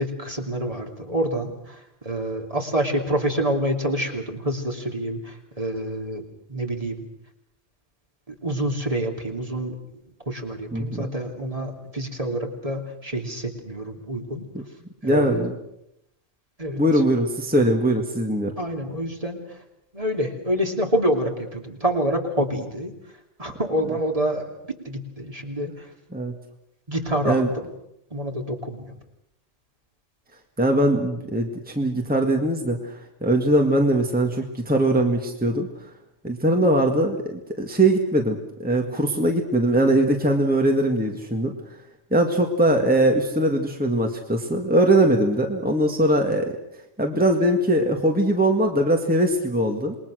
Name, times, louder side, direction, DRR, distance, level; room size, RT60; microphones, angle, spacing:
voice 1, 0.0-6.2 6.5-7.0 8.4-9.7 10.3-14.4 15.0-15.5 16.6-16.8 18.6-19.4 19.9-22.9 23.4-24.5 24.8-25.9 26.9-27.7 28.1-28.9, right 1 dB, 30° right, 2 dB, 3.0 m, -27 dB
voice 2, 10.7-11.1 14.5-14.6 15.0-15.5 16.8-18.5 26.1-26.3 27.3-27.5 30.6-35.7 36.2-41.5 42.1-46.5 47.0-50.0, right 1 dB, 5° right, 2 dB, 1.9 m, -21 dB
28.0 x 21.5 x 6.4 m, 0.83 s
omnidirectional pair, 1.2 m